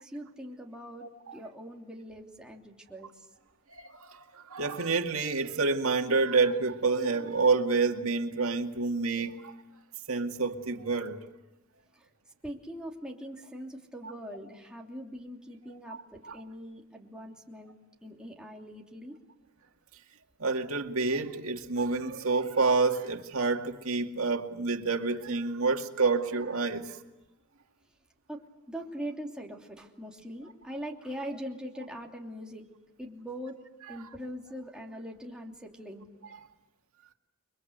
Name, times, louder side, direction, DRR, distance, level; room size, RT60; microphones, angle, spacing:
voice 1, 0.0-3.3 11.9-12.1 12.4-17.7 18.0-19.2 28.3-28.4 28.7-32.6 33.0-33.6 33.9-36.1, equal, 5° right, 3.0 m, -42 dB
voice 2, 1.0-1.4 3.7-9.5 10.1-11.2 15.9-16.0 16.2-16.4 20.4-27.0 33.9-34.0, right 4 dB, 65° right, 2.3 m, -28 dB
29.5 x 23.0 x 8.1 m
head